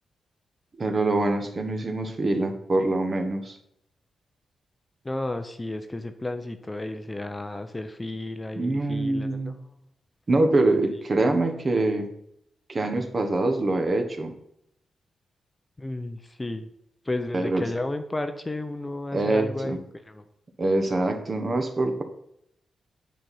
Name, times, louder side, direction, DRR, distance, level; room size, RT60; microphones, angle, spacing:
voice 1, 0.8-3.6 8.6-9.6 10.3-12.1 12.7-14.3 17.3-17.6 19.1-19.8 20.6-22.0, right 2 dB, 40° right, 6 dB, 1.2 m, -24 dB
voice 2, 5.0-9.7 10.9-11.0 15.8-16.7 17.0-20.2, left 2 dB, 20° left, 8 dB, 0.7 m, -33 dB
9.0 x 4.3 x 5.4 m, 0.76 s
cardioid pair, 90°, 0 cm